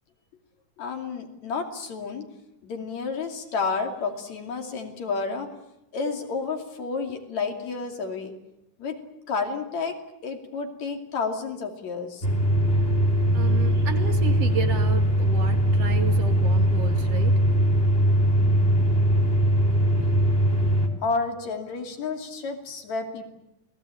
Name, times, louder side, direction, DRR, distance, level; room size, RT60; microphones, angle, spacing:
voice 1, 0.8-2.3 2.6-5.5 5.9-8.3 8.8-12.3 21.0-23.3, left 4 dB, 70° left, 4 dB, 4.0 m, -31 dB
sound 1, 12.2-20.9, equal, 20° left, 3.3 m, -21 dB
voice 2, 13.3-17.4, right 5 dB, 60° right, 6 dB, 3.2 m, -33 dB
28.5 x 19.5 x 8.6 m, 0.87 s
omnidirectional pair, 3.3 m